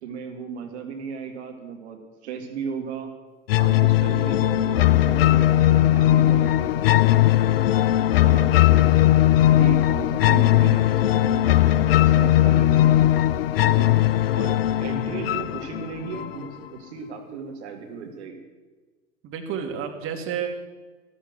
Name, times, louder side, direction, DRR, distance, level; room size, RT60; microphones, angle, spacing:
voice 1, 0.0-3.1 3.6-7.5 8.2-9.1 9.6-13.0 13.5-14.0 14.3-18.4, right 6 dB, 55° right, 4 dB, 2.2 m, -36 dB
sound 1, 3.5-16.5, left 13 dB, 50° left, 0.5 m, -19 dB
voice 2, 19.2-20.5, right 8 dB, 30° right, 3 dB, 2.4 m, -30 dB
14.0 x 13.0 x 6.4 m, 1.3 s
figure-of-eight pair, 95°, 40 cm